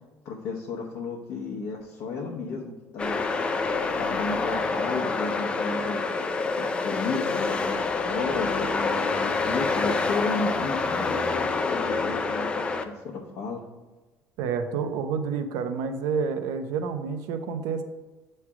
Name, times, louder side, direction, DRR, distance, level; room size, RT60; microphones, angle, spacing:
voice 1, 0.2-3.2 4.0-6.0 6.6-12.5 12.8-13.6, left 4 dB, 60° left, -3 dB, 0.9 m, -33 dB
sound 1, 3.0-12.8, left 4 dB, 20° left, 0.3 m, -27 dB
voice 2, 14.4-17.8, right 6 dB, 80° right, 8 dB, 0.6 m, -29 dB
8.5 x 3.2 x 4.8 m, 1.2 s
cardioid pair, 165°, 6 cm